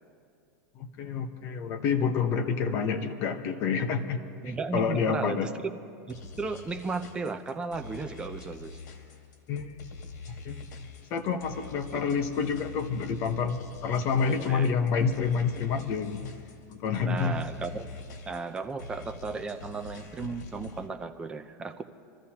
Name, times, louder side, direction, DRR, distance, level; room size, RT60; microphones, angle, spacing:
voice 1, 0.8-4.2 4.4-5.5 9.5-9.7 10.4-16.3 16.7-17.4, left 6 dB, 30° left, 5 dB, 1.0 m, -28 dB
voice 2, 4.4-5.7 6.1-8.8 14.4-14.7 17.0-17.9 18.3-21.8, right 4 dB, 10° right, 6 dB, 0.5 m, -35 dB
sound 1, 6.1-20.9, left 3 dB, 90° left, 1.9 m, -45 dB
26.0 x 14.0 x 2.9 m, 2.4 s
supercardioid pair, 170°, 9 cm